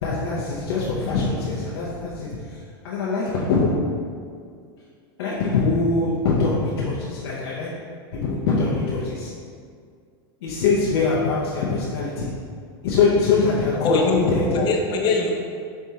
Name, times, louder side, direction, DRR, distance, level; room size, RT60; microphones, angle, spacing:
voice 1, 0.0-3.8 5.2-7.7 8.1-9.3 10.4-12.3 12.8-14.6, left 4 dB, 80° left, -6 dB, 0.7 m, -23 dB
voice 2, 13.7-15.3, left 3 dB, 35° left, 2 dB, 0.6 m, -22 dB
4.4 x 3.4 x 2.8 m, 2.1 s
supercardioid pair, 130°, 13 cm